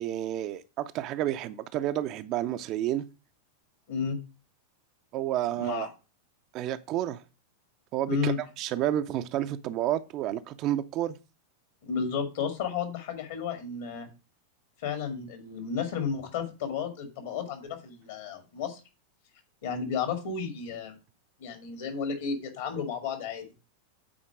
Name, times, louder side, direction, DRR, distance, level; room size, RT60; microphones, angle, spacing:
voice 1, 0.0-3.1 5.1-5.9 6.5-7.2 7.9-11.2, right 12 dB, 40° right, 0.5 m, -30 dB
voice 2, 5.6-5.9 8.1-8.4 11.8-14.1 14.8-18.8 19.6-20.9 21.4-23.5, left 6 dB, 55° left, 2.0 m, -32 dB
8.7 x 4.4 x 4.8 m
figure-of-eight pair, 90°, 0 cm